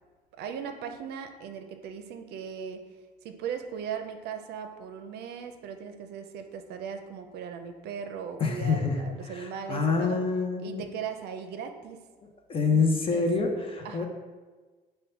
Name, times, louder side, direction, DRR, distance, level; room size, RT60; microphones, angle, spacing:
voice 1, 0.4-2.8 3.2-10.2 10.6-12.0 12.7-13.3 13.8-14.1, right 7 dB, 75° right, 7 dB, 0.5 m, -38 dB
voice 2, 8.4-9.0 9.3-10.8 12.5-14.1, left 4 dB, 35° left, 3 dB, 0.6 m, -26 dB
5.3 x 2.2 x 4.3 m, 1.4 s
cardioid pair, 110°, 17 cm